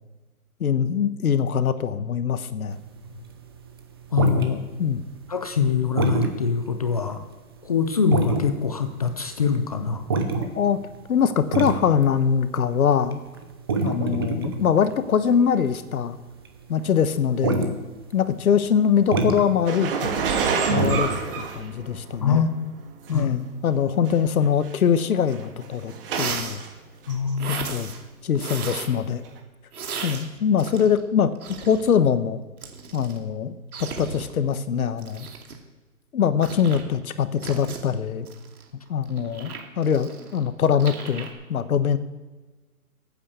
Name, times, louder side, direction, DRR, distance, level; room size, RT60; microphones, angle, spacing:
voice 1, 0.6-2.8 4.8-5.0 10.5-10.8 11.1-13.2 13.8-16.2 16.7-17.8 18.1-20.1 20.7-22.5 23.1-26.6 27.5-27.9 28.2-29.2 30.0-31.3 31.7-32.4 32.9-33.5 34.0-35.3 36.1-38.3 38.9-42.0, left 7 dB, 70° left, 12 dB, 1.2 m, -23 dB
sound 1, 2.7-5.2 5.5-6.3 6.7-6.8 7.0-7.3 7.9-8.6 8.9-16.8 17.1-17.8 18.1-18.2 18.4-18.5 18.8-21.4, right 3 dB, 15° right, 0.6 m, -26 dB
voice 2, 4.1-4.6 5.3-7.2 7.6-10.1 22.2-22.5 23.1-23.3 27.1-27.7, left 6 dB, 25° left, 8 dB, 0.5 m, -23 dB
sound 2, 19.7-22.2 23.1-23.2 24.1-24.2 24.4-24.7 25.3-26.7 27.1-27.7 27.9-28.0 29.2-29.3, right 5 dB, 40° right, 1.7 m, -27 dB
sound 3, 25.6-25.7 26.1-26.6 27.4-27.9 28.3-29.0 29.7-31.1 31.3-31.9 32.6-33.2 33.7-34.3 35.0-35.6 36.4-36.8 37.4-37.8 38.3-40.4 40.8-41.3, right 6 dB, 75° right, 2.6 m, -35 dB
13.0 x 8.8 x 6.9 m, 1.3 s
hypercardioid pair, 155°, 44 cm